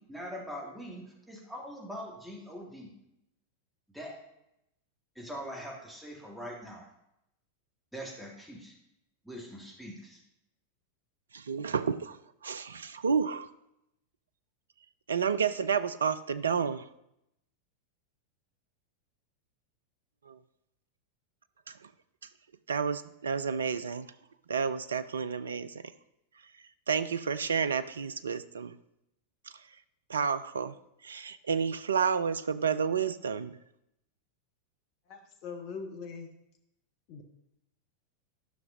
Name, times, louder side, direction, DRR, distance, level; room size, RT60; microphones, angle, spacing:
voice 1, 0.0-2.9 3.9-4.2 5.2-6.9 7.9-8.7 9.2-10.2, equal, ahead, -2 dB, 1.8 m, -42 dB
voice 2, 11.3-12.2 12.4-13.5 15.1-16.9 20.3-20.4 21.7-21.9 22.7-24.1 24.5-25.8 26.9-28.8 30.1-30.7 31.0-33.6, right 6 dB, 70° right, 13 dB, 0.4 m, -30 dB
voice 3, 35.1-36.3 37.1-37.2, left 5 dB, 45° left, 3 dB, 1.0 m, -41 dB
12.5 x 5.9 x 2.6 m, 0.82 s
figure-of-eight pair, 90°, 0 cm